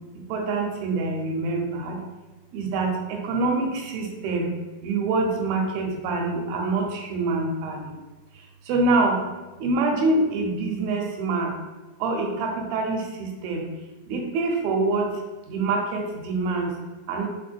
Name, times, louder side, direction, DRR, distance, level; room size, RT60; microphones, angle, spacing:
voice 1, 0.3-2.0 2.5-4.5 4.8-7.8 8.7-9.2 9.6-11.5 12.0-13.6 14.1-15.1 15.5-16.7 17.1-17.3, right 3 dB, 80° right, 1 dB, 2.5 m, -25 dB
6.4 x 2.1 x 3.3 m, 1.2 s
omnidirectional pair, 4.3 m